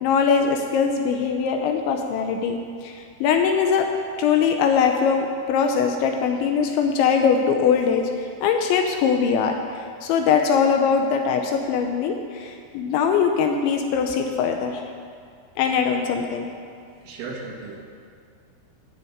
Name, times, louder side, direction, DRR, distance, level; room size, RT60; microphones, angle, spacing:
voice 1, 0.0-3.9 4.2-14.8 15.6-16.5, left 6 dB, 80° left, 4 dB, 2.9 m, -22 dB
voice 2, 17.0-17.8, right 3 dB, 65° right, -3 dB, 4.0 m, -35 dB
12.0 x 6.8 x 8.7 m, 2.2 s
omnidirectional pair, 5.8 m